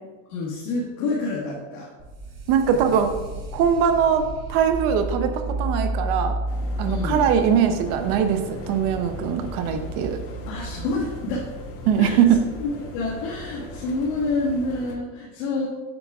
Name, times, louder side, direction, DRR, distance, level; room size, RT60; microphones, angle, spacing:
voice 1, 0.3-1.9 6.8-7.3 10.5-11.5 12.0-15.7, left 3 dB, 75° left, -5 dB, 1.5 m, -28 dB
sound 1, 2.0-12.7, right 1 dB, 80° right, 1.7 m, -32 dB
voice 2, 2.5-3.1 3.5-4.2 4.5-6.4 6.8-10.2 11.9-12.4, right 8 dB, 55° right, 7 dB, 0.6 m, -21 dB
sound 2, 6.5-15.0, left 1 dB, 35° left, 0.7 m, -40 dB
7.7 x 5.8 x 2.4 m, 1.3 s
cardioid pair, 160°, 42 cm